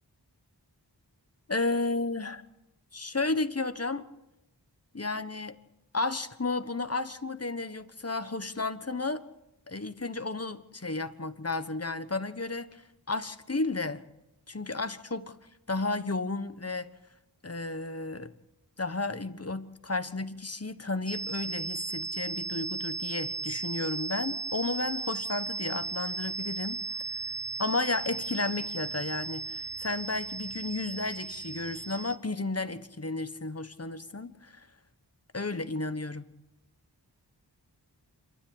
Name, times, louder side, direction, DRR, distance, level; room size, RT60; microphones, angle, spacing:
voice 1, 1.5-2.4 2.9-4.1 4.9-5.6 5.9-9.2 9.7-12.8 13.1-14.0 14.5-15.4 15.7-16.9 17.4-18.3 18.8-26.8 27.6-34.7 35.3-36.3, left 3 dB, 35° left, 11 dB, 1.3 m, -33 dB
sound 1, 21.1-32.2, right 4 dB, 25° right, 1.2 m, -36 dB
27.5 x 13.0 x 8.8 m, 0.91 s
wide cardioid pair, 45°, 42 cm